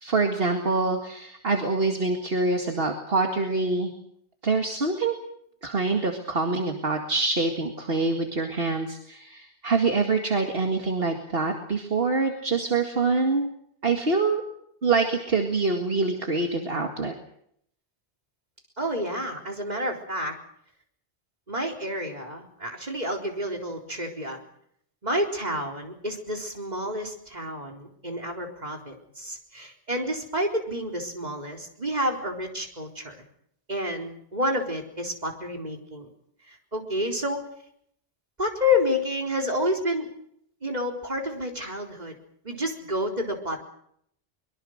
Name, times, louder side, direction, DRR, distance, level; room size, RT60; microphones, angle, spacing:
voice 1, 0.0-3.9 4.4-5.1 5.6-13.5 13.8-14.4 14.8-17.1, right 3 dB, 60° right, 3 dB, 2.3 m, -25 dB
voice 2, 18.8-20.3 21.5-24.4 25.0-33.2 33.7-36.1 36.5-37.4 38.4-40.1 40.6-42.1 42.4-43.6, left 1 dB, 40° right, 2 dB, 4.2 m, -29 dB
24.0 x 22.5 x 6.6 m, 0.70 s
omnidirectional pair, 1.1 m